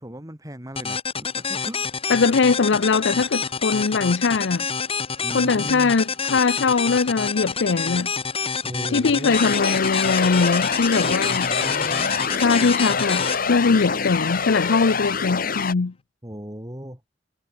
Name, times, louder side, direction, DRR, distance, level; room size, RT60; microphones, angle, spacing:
voice 1, 0.0-1.8 5.2-5.9 8.6-9.4 11.2-12.3 16.2-17.0, equal, 20° right, 4.3 m, -36 dB
sound 1, 0.8-14.4, left 5 dB, 30° left, 5.8 m, -28 dB
voice 2, 2.1-4.7 5.3-8.1 8.9-11.5 12.3-15.9, left 4 dB, 80° left, 0.6 m, -21 dB
sound 2, 9.3-15.7, left 5 dB, 50° left, 1.7 m, -25 dB
head